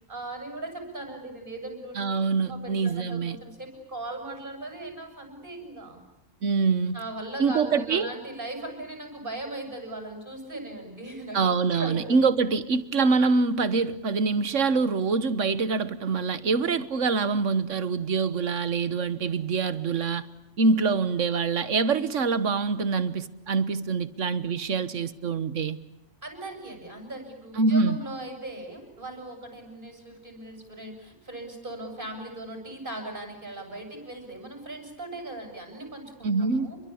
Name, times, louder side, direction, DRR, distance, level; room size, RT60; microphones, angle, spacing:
voice 1, 0.1-2.0 2.4-6.0 6.9-12.2 26.2-36.9, right 2 dB, 45° right, 8.3 m, -38 dB
voice 2, 2.0-3.4 6.4-7.0 7.4-8.1 11.3-20.3 20.6-25.8 27.6-28.0 36.2-36.7, right 4 dB, 80° right, 1.6 m, -25 dB
29.5 x 23.0 x 8.6 m
omnidirectional pair, 1.3 m